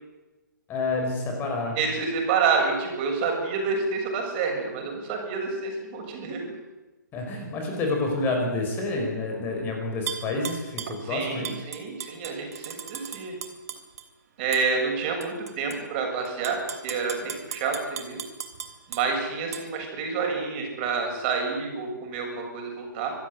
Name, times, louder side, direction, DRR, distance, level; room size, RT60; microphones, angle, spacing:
voice 1, 0.7-1.8 7.1-11.5, left 2 dB, 20° left, 2 dB, 5.0 m, -28 dB
voice 2, 1.8-6.4 11.0-13.4 14.4-16.6 16.8-18.2 18.9-23.1, right 5 dB, 30° right, 2 dB, 7.2 m, -28 dB
Tap / Glass, 10.1-11.0 11.4-14.1 14.5-14.7 15.2-15.8 16.3-19.0 19.5-19.6, right 8 dB, 50° right, 2.9 m, -36 dB
25.5 x 15.5 x 9.5 m, 1.1 s
figure-of-eight pair, 135°, 11 cm